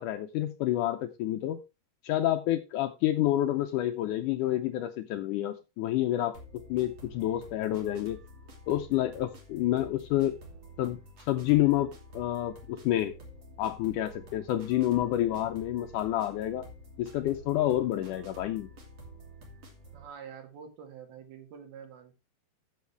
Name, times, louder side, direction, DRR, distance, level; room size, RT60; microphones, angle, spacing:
voice 1, 0.0-1.6 2.0-8.2 8.7-10.3 10.8-11.0 11.3-13.1 13.6-16.7 17.0-18.7, left 13 dB, 80° left, 8 dB, 1.8 m, -28 dB
sound 1, 6.3-20.1, right 1 dB, 45° right, 3.6 m, -49 dB
voice 2, 19.9-22.2, right 7 dB, 85° right, 5 dB, 3.8 m, -46 dB
14.0 x 6.5 x 3.3 m, 0.27 s
omnidirectional pair, 4.3 m